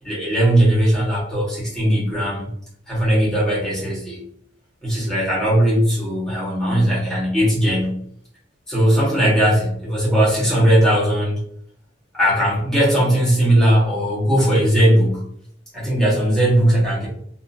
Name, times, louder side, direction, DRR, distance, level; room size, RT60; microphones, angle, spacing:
voice 1, 0.0-2.5 2.9-4.2 4.8-8.0 8.7-11.4 12.1-15.2 15.7-17.1, right 1 dB, 5° left, -8 dB, 1.1 m, -18 dB
2.7 x 2.5 x 2.5 m, 0.67 s
head